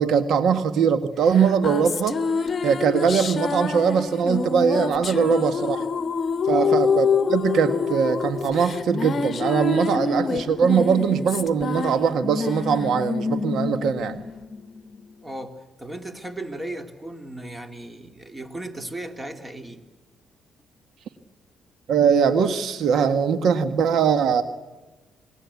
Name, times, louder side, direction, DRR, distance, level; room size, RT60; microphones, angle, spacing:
voice 1, 0.0-2.2 2.6-5.8 6.5-14.2 21.9-24.4, right 6 dB, 75° right, 10 dB, 1.6 m, -21 dB
sound 1, 1.3-15.0, left 5 dB, 40° left, 1.1 m, -26 dB
voice 2, 15.2-19.8, right 1 dB, 15° right, 6 dB, 2.9 m, -36 dB
27.5 x 22.0 x 8.4 m, 1.2 s
cardioid pair, 90°, 0 cm